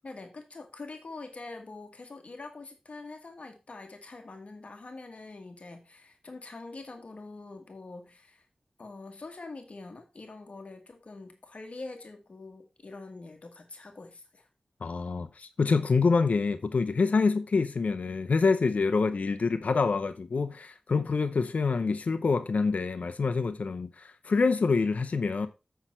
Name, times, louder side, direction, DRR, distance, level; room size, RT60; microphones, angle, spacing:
voice 1, 0.0-8.5 8.8-14.5, left 3 dB, 60° left, 1.4 m, -44 dB
voice 2, 14.8-25.5, left 4 dB, 80° left, 0.7 m, -26 dB
8.1 x 5.7 x 4.3 m
wide cardioid pair, 65°, 2 cm